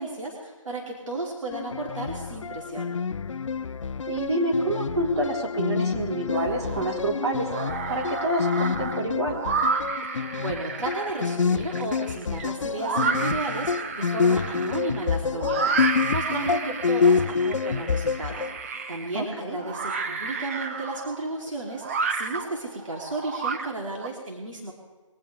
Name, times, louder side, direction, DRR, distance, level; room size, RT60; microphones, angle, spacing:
voice 1, 0.0-3.0 10.1-24.7, right 2 dB, 70° right, -1 dB, 3.1 m, -34 dB
sound 1, 1.5-18.6, left 5 dB, 70° left, 0.5 m, -27 dB
voice 2, 4.1-7.5 7.9-9.4 19.1-19.6, right 1 dB, 55° right, -1 dB, 3.8 m, -27 dB
sound 2, 6.3-7.0 7.4-24.1, right 4 dB, 25° right, 0.9 m, -31 dB
22.0 x 16.5 x 3.4 m, 1.3 s
figure-of-eight pair, 155°, 17 cm